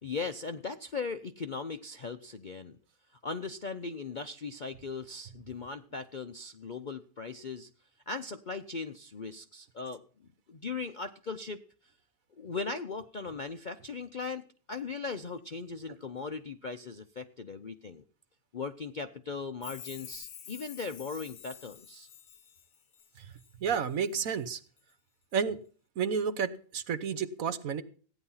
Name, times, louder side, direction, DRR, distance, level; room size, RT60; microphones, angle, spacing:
voice 1, 0.0-2.8 3.1-7.7 8.1-10.0 10.5-11.6 12.4-18.0 18.5-22.1, left 4 dB, 50° left, 9 dB, 0.6 m, -38 dB
Chime, 19.6-23.5 23.9-24.4 24.8-24.9, left 10 dB, 70° left, 1.3 m, -48 dB
voice 2, 23.6-24.6 25.3-25.6 26.0-27.8, right 6 dB, 60° right, 12 dB, 1.3 m, -31 dB
16.0 x 10.0 x 5.6 m, 0.42 s
omnidirectional pair, 1.7 m